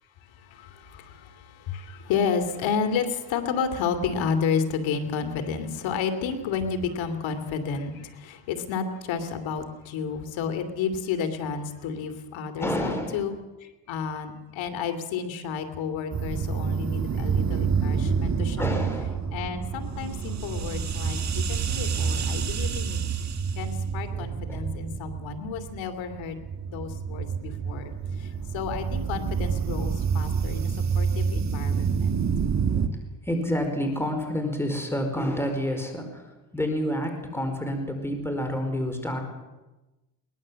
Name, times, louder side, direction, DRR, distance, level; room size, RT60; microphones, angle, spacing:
voice 1, 0.2-13.3 13.6-18.9 19.3-23.0 23.5-32.2, left 6 dB, 75° left, 7 dB, 2.9 m, -31 dB
voice 2, 12.6-13.2 18.6-19.2 24.1-24.7 30.5-30.7 32.6-39.2, equal, 5° left, 4 dB, 4.8 m, -29 dB
sound 1, 16.1-32.9, right 6 dB, 35° right, 1.6 m, -28 dB
22.5 x 18.5 x 7.6 m, 1.1 s
cardioid pair, 115°, 46 cm